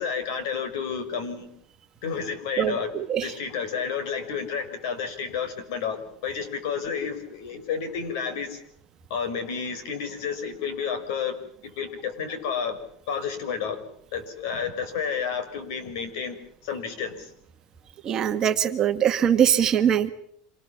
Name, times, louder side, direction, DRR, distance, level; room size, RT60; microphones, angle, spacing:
voice 1, 0.0-1.5 2.0-2.9 3.2-8.6 9.1-11.3 11.6-12.8 13.1-13.8 14.1-16.4 16.6-17.3, left 6 dB, 70° left, 10 dB, 5.7 m, -31 dB
voice 2, 2.6-3.3 18.0-20.1, right 9 dB, 25° right, 8 dB, 1.6 m, -22 dB
26.5 x 20.5 x 7.4 m, 0.66 s
supercardioid pair, 165°, 2 cm